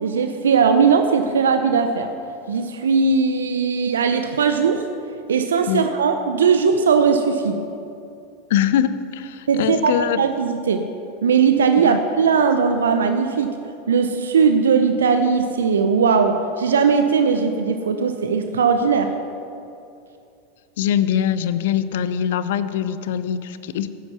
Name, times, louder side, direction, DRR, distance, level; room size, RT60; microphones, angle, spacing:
voice 1, 0.0-2.1 2.5-4.8 5.3-7.6 9.5-10.8 11.2-13.5 13.9-19.1, right 5 dB, 80° right, 7 dB, 0.8 m, -19 dB
voice 2, 8.5-10.2 11.8-12.0 20.8-23.9, left 9 dB, 65° left, 13 dB, 0.6 m, -22 dB
13.5 x 10.5 x 5.9 m, 2.6 s
hypercardioid pair, 90°, 0 cm